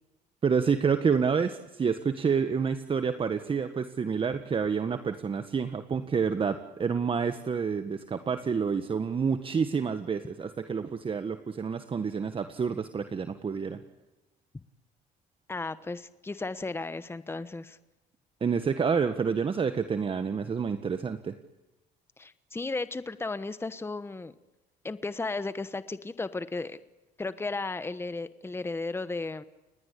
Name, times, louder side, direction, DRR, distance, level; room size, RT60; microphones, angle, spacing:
voice 1, 0.4-13.8 18.4-21.3, right 6 dB, 30° right, 9 dB, 1.6 m, -28 dB
voice 2, 15.5-17.8 22.2-24.3 24.8-26.8 27.2-29.4, left 3 dB, 15° left, 13 dB, 1.2 m, -34 dB
29.5 x 20.0 x 8.5 m, 1.0 s
cardioid pair, 110°, 17 cm